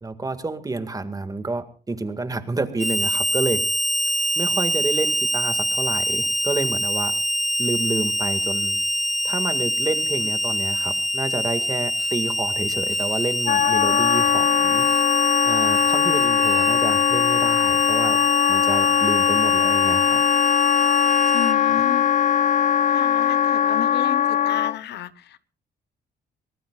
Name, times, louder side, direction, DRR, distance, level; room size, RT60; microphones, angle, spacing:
voice 1, 0.0-3.6 4.4-7.1 7.6-8.8 9.2-14.9 15.4-18.2 18.5-20.2 21.4-21.5, right 3 dB, 20° right, 9 dB, 1.9 m, -29 dB
Harmonica, 2.8-21.5, equal, ahead, 0.7 m, -25 dB
Wind instrument woodwind instrument, 13.5-24.8, left 9 dB, 50° left, 0.6 m, -20 dB
voice 2, 21.3-22.0 22.9-25.5, left 10 dB, 80° left, 15 dB, 1.0 m, -33 dB
25.0 x 18.5 x 2.4 m, 0.38 s
cardioid pair, 110°, 17 cm